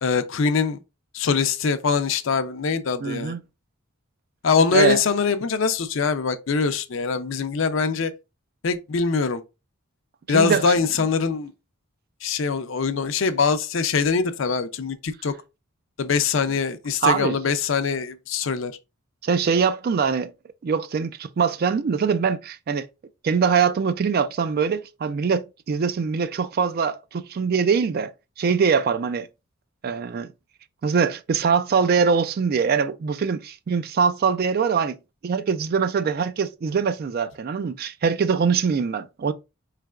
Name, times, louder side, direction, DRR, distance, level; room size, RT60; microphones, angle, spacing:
voice 1, 0.0-0.8 1.1-3.3 4.4-8.1 8.6-9.4 10.3-11.5 12.2-15.3 16.0-18.7, left 5 dB, 65° left, 0.5 m, -23 dB
voice 2, 3.0-3.4 4.7-5.0 10.3-10.7 17.0-17.4 19.2-20.3 20.6-22.9 23.2-28.1 28.4-29.3 29.8-30.3 30.8-35.0 35.2-39.3, right 6 dB, 45° right, 0.3 m, -23 dB
4.5 x 3.2 x 2.4 m
head